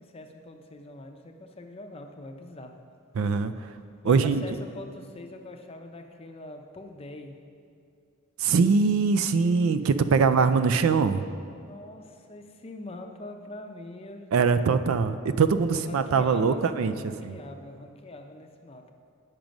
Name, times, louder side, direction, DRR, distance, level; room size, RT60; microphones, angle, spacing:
voice 1, 0.0-2.8 4.0-7.4 10.0-10.5 11.6-14.3 14.7-15.0 15.7-18.9, left 2 dB, 25° left, 4 dB, 0.5 m, -43 dB
voice 2, 3.2-3.7 4.0-4.4 8.4-11.2 14.3-17.4, right 5 dB, 70° right, 11 dB, 0.4 m, -22 dB
8.9 x 6.0 x 5.2 m, 2.4 s
head